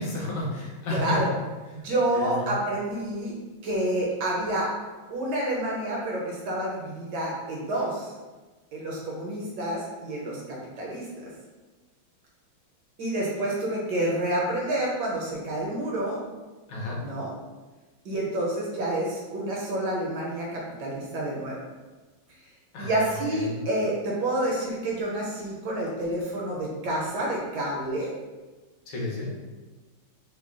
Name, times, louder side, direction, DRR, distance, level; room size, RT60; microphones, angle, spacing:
voice 1, 0.0-1.2 1.7-1.8 2.1-2.5 16.7-17.0 22.7-23.6 28.9-29.3, left 2 dB, 80° left, -4 dB, 1.7 m, -32 dB
voice 2, 0.9-1.3 1.7-3.3 3.6-4.7 5.1-8.1 8.7-11.3 13.0-16.2 17.0-17.3 18.0-21.6 22.8-28.1, right 1 dB, 70° right, -3 dB, 1.2 m, -29 dB
3.7 x 2.2 x 3.6 m, 1.2 s
omnidirectional pair, 2.2 m